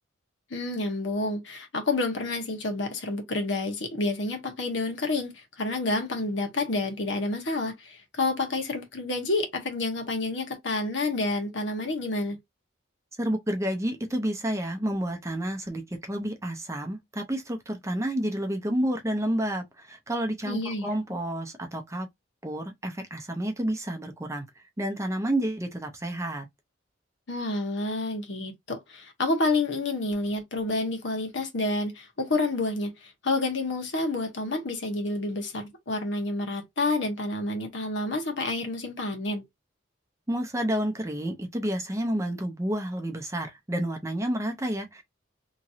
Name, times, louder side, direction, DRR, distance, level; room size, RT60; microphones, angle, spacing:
voice 1, 0.5-12.4 20.4-20.9 27.3-39.4, left 2 dB, 65° left, 1.1 m, -29 dB
voice 2, 13.2-22.1 22.4-24.5 24.8-26.5 40.3-45.0, right 1 dB, 15° right, 0.6 m, -30 dB
3.0 x 2.5 x 2.7 m
head